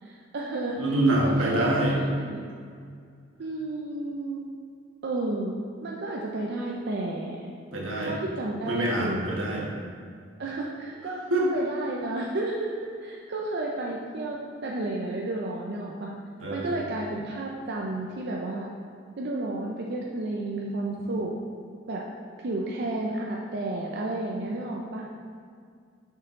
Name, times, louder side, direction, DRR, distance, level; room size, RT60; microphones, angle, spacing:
voice 1, 0.0-0.8 1.1-2.4 3.4-4.4 5.0-5.5 5.8-7.5 8.0-9.2 10.4-11.2 11.5-12.7 13.0-16.1 16.5-18.7 19.2-21.3 21.9-22.0 22.4-25.0, right 2 dB, 55° right, -2 dB, 0.5 m, -32 dB
voice 2, 0.8-2.0 7.7-8.1 8.6-9.7 11.3-11.5 16.4-16.8, right 1 dB, 90° right, -3 dB, 1.3 m, -25 dB
5.9 x 4.5 x 3.7 m, 2.2 s
head